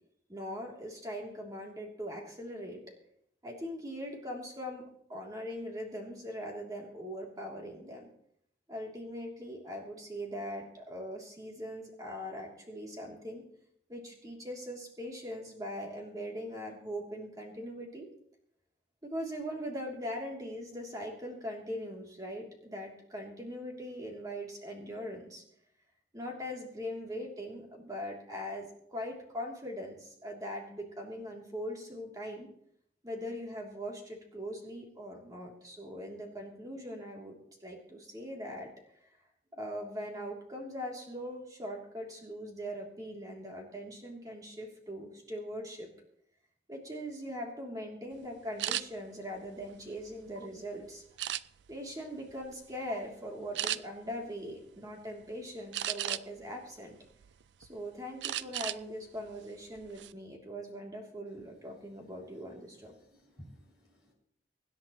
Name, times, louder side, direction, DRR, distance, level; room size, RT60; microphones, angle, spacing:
voice 1, 0.3-2.8 3.4-4.8 5.1-8.1 8.7-13.4 13.9-18.1 19.0-25.4 26.1-32.5 33.0-38.7 39.0-39.1 39.5-45.9 46.7-51.0 51.7-57.0 57.6-62.9, equal, 20° right, 0 dB, 3.0 m, -41 dB
sound 1, 48.6-48.8 49.5-50.5 51.2-51.8 52.3-52.5 52.9-53.0 53.5-53.8 55.7-56.4 56.9-57.7 58.2-58.8 59.2-59.3 59.8-60.1, right 12 dB, 75° right, 0.4 m, -35 dB
voice 2, 62.9-64.1, equal, 5° right, -5 dB, 6.1 m, -55 dB
24.5 x 10.5 x 3.1 m, 0.68 s
head